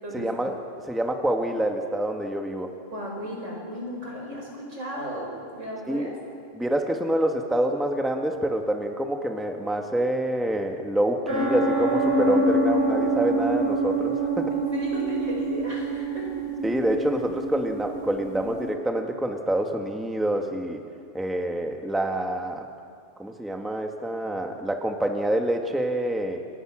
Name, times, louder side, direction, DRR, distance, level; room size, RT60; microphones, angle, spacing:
voice 1, 0.1-0.6 0.8-2.7 5.9-6.1 6.6-14.5 16.6-20.8 21.1-22.6 23.2-26.4, right 1 dB, ahead, 3 dB, 1.7 m, -27 dB
voice 2, 2.9-6.2 14.5-16.3, equal, 70° right, -2 dB, 7.0 m, -35 dB
sound 1, 11.3-18.7, right 2 dB, 50° right, 5.8 m, -26 dB
29.5 x 26.0 x 6.3 m, 2.3 s
omnidirectional pair, 1.3 m